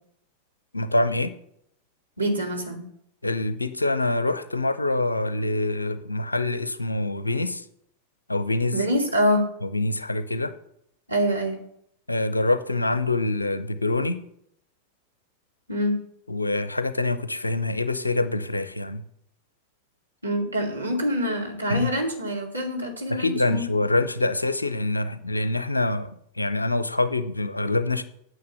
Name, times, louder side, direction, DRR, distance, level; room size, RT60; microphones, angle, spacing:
voice 1, 0.7-1.3 3.2-7.6 8.3-8.8 9.6-10.5 12.1-14.2 16.3-19.0 21.7-21.9 23.1-28.0, left 2 dB, 80° left, 12 dB, 0.6 m, -25 dB
voice 2, 2.2-2.8 8.7-9.5 11.1-11.6 15.7-16.0 20.2-23.7, equal, 85° right, -1 dB, 2.3 m, -25 dB
9.3 x 6.3 x 6.8 m, 0.72 s
figure-of-eight pair, 90°, 0 cm